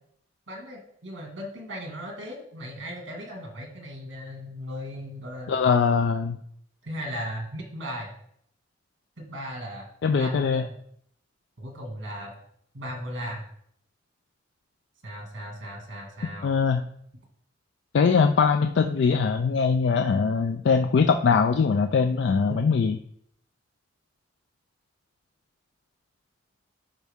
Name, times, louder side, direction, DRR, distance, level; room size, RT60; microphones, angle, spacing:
voice 1, 0.5-5.5 6.8-8.1 9.2-10.7 11.6-12.3 12.7-13.4 15.0-16.6, equal, 80° right, 1 dB, 1.9 m, -37 dB
voice 2, 5.5-6.4 10.0-10.6 16.4-16.8 17.9-23.0, left 5 dB, 65° left, 7 dB, 0.4 m, -22 dB
10.5 x 4.0 x 3.5 m, 0.69 s
head